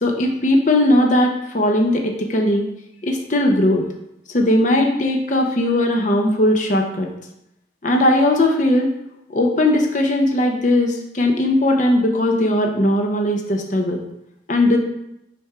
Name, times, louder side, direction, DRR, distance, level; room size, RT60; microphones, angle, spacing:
voice 1, 0.0-2.7 3.0-3.9 4.3-7.1 7.8-8.9 9.3-14.0 14.5-14.8, left 1 dB, 45° left, 2 dB, 0.7 m, -18 dB
6.5 x 3.5 x 4.6 m, 0.82 s
head